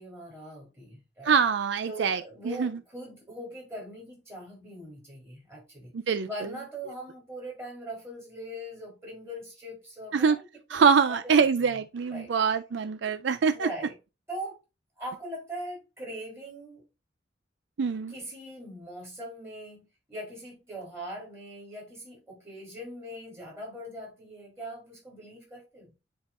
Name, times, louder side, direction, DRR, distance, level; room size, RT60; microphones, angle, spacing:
voice 1, 0.0-1.4 1.9-5.9 6.2-11.8 12.1-12.3 13.4-14.0 14.3-14.6 15.0-16.9 18.1-25.9, equal, 15° right, 3.4 m, -41 dB
voice 2, 1.3-2.2 2.6-2.7 5.9-6.3 10.1-10.4 10.7-13.7 17.8-18.1, right 6 dB, 70° right, 0.4 m, -24 dB
10.0 x 3.6 x 2.6 m
head